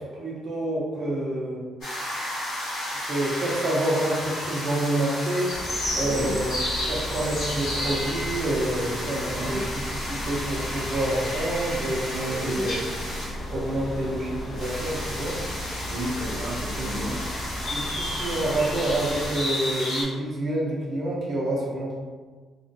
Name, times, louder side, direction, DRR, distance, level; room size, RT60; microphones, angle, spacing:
voice 1, 0.0-1.7 2.9-5.6 5.9-6.5 6.9-12.7 13.5-15.4 16.2-16.4 16.8-16.9 17.7-22.0, right 1 dB, 35° right, -3 dB, 0.6 m, -28 dB
sound 1, 1.8-20.0, left 1 dB, 80° left, 1.3 m, -32 dB
sound 2, 5.5-19.3, equal, 25° left, 0.4 m, -35 dB
voice 2, 6.0-6.4 8.9-9.6 12.2-12.7 15.9-17.3, right 1 dB, 90° right, -1 dB, 0.6 m, -33 dB
3.0 x 2.4 x 2.7 m, 1.4 s
cardioid pair, 180°, 0 cm